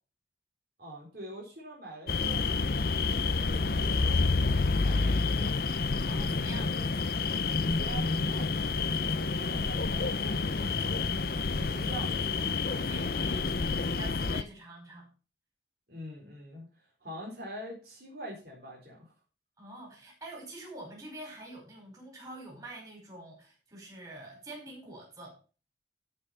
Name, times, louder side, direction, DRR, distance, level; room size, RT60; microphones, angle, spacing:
voice 1, 0.8-2.4 3.3-5.7 6.7-6.9 7.7-11.1 11.5-12.5 15.9-19.1, right 1 dB, 55° right, -2 dB, 3.8 m, -45 dB
sound 1, 2.1-14.4, left 4 dB, 55° left, 0.7 m, -29 dB
voice 2, 6.0-6.7 12.8-13.5 14.0-15.1 19.6-25.4, right 2 dB, 20° right, -2 dB, 5.4 m, -46 dB
13.5 x 5.7 x 5.7 m, 0.35 s
head